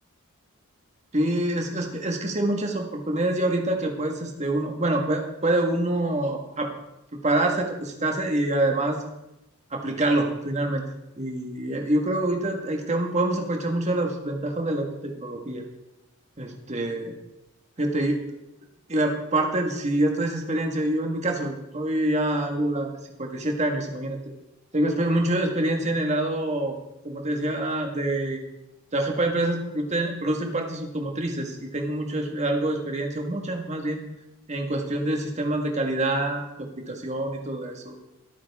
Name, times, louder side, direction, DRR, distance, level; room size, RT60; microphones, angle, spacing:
voice 1, 1.1-6.7 7.1-9.0 9.7-10.8 11.2-15.6 16.4-17.1 17.8-18.2 18.9-22.9 23.2-24.2 24.7-26.8 27.0-28.4 28.9-34.0 34.5-38.0, right 1 dB, 30° right, 2 dB, 1.8 m, -26 dB
22.5 x 8.9 x 3.7 m, 0.92 s
head